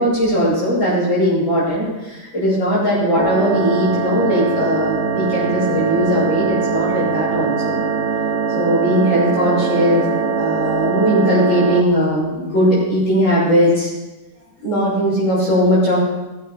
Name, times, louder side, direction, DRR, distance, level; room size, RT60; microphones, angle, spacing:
voice 1, 0.0-7.8 8.5-13.9 14.6-16.0, equal, 80° left, -13 dB, 5.3 m, -18 dB
sound 1, 3.2-11.8, right 5 dB, 65° right, 0.7 m, -22 dB
16.5 x 7.6 x 5.3 m, 1.1 s
omnidirectional pair, 2.1 m